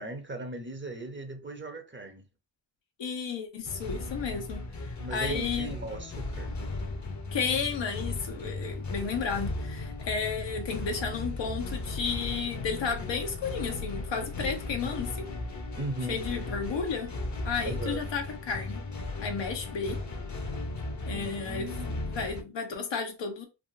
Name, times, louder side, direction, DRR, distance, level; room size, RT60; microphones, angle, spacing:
voice 1, 0.0-2.3 5.0-6.6 15.8-16.2 17.6-18.1 21.1-22.1, right 2 dB, 25° right, 0.7 m, -38 dB
voice 2, 3.0-5.7 7.3-15.3 16.1-17.1 17.4-18.8 19.2-20.0 21.0-21.7 22.0-23.5, left 5 dB, 80° left, 0.9 m, -33 dB
sound 1, 3.6-22.4, left 2 dB, 40° left, 0.7 m, -36 dB
3.5 x 2.1 x 2.5 m
cardioid pair, 55°, 43 cm